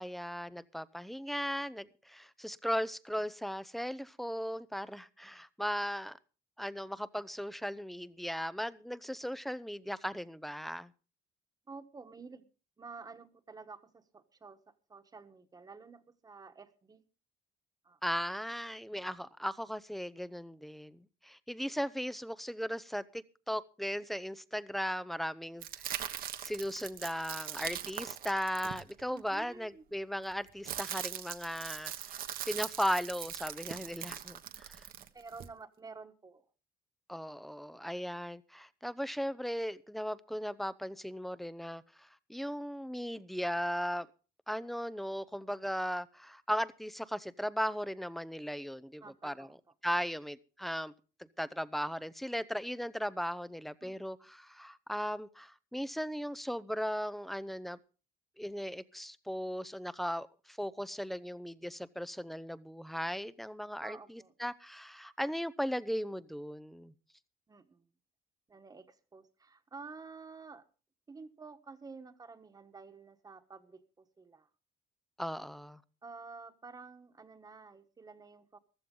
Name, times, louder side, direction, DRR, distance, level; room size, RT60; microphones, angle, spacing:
voice 1, 0.0-6.2 6.6-10.9 18.0-34.9 37.1-44.1 44.5-49.5 49.8-50.9 51.2-57.8 58.4-66.9 75.2-75.8, equal, ahead, 0.7 m, -37 dB
voice 2, 11.7-12.5 12.8-17.0 17.8-18.0 29.1-29.8 35.1-36.4 49.0-49.5 53.8-54.0 63.8-64.3 67.5-67.8 68.5-70.6 71.1-74.5 76.0-78.6, right 4 dB, 20° right, 1.4 m, -50 dB
sound 1, 25.6-29.3 30.2-35.5, right 10 dB, 60° right, 1.3 m, -41 dB
15.0 x 13.5 x 3.8 m
cardioid pair, 130°, 16 cm